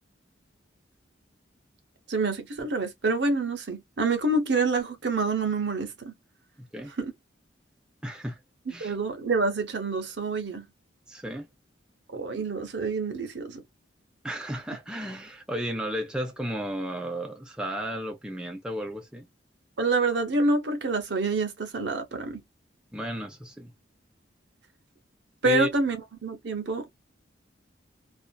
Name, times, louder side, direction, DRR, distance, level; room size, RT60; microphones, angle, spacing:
voice 1, 2.1-6.1 7.0-7.1 8.7-10.6 12.1-13.6 19.8-22.4 25.4-26.0 26.2-26.9, right 3 dB, 70° right, 0.7 m, -27 dB
voice 2, 6.6-6.9 8.0-8.4 8.7-8.9 11.1-11.5 14.2-19.3 22.9-23.7 25.4-25.7, right 1 dB, 5° right, 0.5 m, -34 dB
2.5 x 2.3 x 2.2 m
head